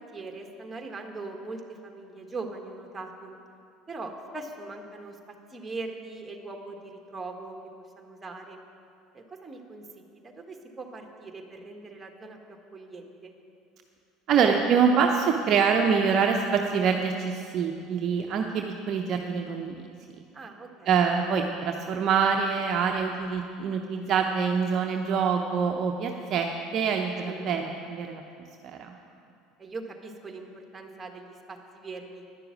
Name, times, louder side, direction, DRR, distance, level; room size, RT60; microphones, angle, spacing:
voice 1, 0.0-3.3 3.9-7.6 8.0-8.6 9.1-13.4 20.3-20.9 27.2-27.5 29.6-32.2, right 3 dB, 20° right, 3 dB, 1.6 m, -41 dB
voice 2, 14.3-19.9 20.9-28.2 28.6-29.0, right 6 dB, 50° right, 2 dB, 0.7 m, -25 dB
10.5 x 6.8 x 9.0 m, 2.5 s
hypercardioid pair, 75°, 0 cm